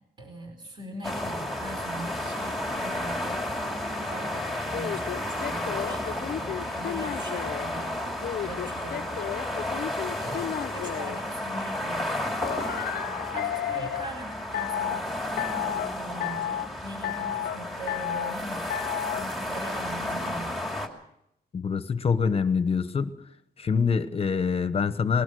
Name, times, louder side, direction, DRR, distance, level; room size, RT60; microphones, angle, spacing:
voice 1, 0.2-8.0 8.4-9.3 10.2-13.0 13.3-20.6, right 1 dB, 30° right, 4 dB, 4.5 m, -41 dB
sound 1, 1.0-20.9, left 1 dB, ahead, 2.5 m, -32 dB
sound 2, 4.7-7.7 8.2-11.2 12.4-14.1 14.5-15.0 15.4-15.9 16.2-16.7 17.0-17.6 17.9-18.3 18.7-19.2, left 11 dB, 70° left, 0.7 m, -32 dB
voice 2, 21.5-23.1 23.6-25.2, left 5 dB, 35° left, 12 dB, 1.1 m, -25 dB
21.0 x 19.5 x 6.4 m, 0.80 s
wide cardioid pair, 170°, 17 cm